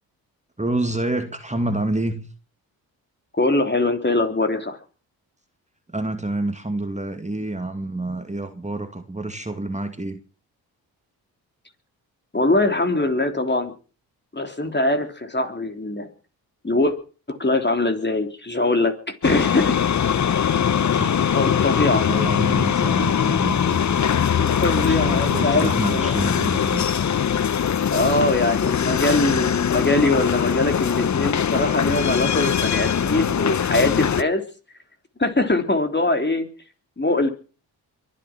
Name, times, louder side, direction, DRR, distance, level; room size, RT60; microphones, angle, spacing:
voice 1, 0.6-2.3 5.9-10.2 20.9-21.4 21.9-24.0 24.6-26.9, right 2 dB, 15° right, 2.3 m, -28 dB
voice 2, 3.4-4.8 12.3-13.7 14.3-16.1 16.6-16.9 17.3-18.9 19.2-19.8 21.2-22.0 24.4-26.1 27.9-34.4 35.2-36.5 37.0-37.3, left 2 dB, 25° left, 3.4 m, -22 dB
sound 1, 19.2-34.2, left 8 dB, 40° left, 0.9 m, -21 dB
23.0 x 8.7 x 6.0 m
hypercardioid pair, 40°, 45 cm